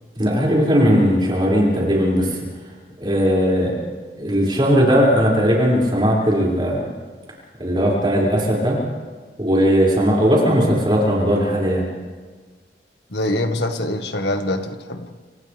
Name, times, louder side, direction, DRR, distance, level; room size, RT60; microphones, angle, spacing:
voice 1, 0.2-2.4 3.0-3.7 4.2-6.8 7.6-8.8 9.4-11.8, equal, 25° right, -5 dB, 6.4 m, -18 dB
voice 2, 13.1-15.1, left 1 dB, 80° left, 6 dB, 1.8 m, -24 dB
30.0 x 27.0 x 3.6 m, 1.4 s
head